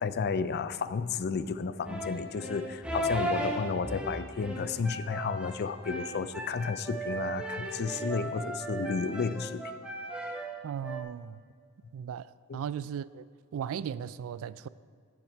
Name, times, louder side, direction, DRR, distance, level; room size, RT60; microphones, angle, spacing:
voice 1, 0.0-9.6 12.5-12.6, left 5 dB, 45° left, 13 dB, 0.4 m, -32 dB
sound 1, 1.8-11.0, right 1 dB, 5° right, 0.8 m, -36 dB
voice 2, 10.6-11.4 11.9-13.3 13.5-14.7, right 8 dB, 65° right, 17 dB, 0.3 m, -37 dB
15.0 x 5.9 x 4.4 m, 2.2 s
head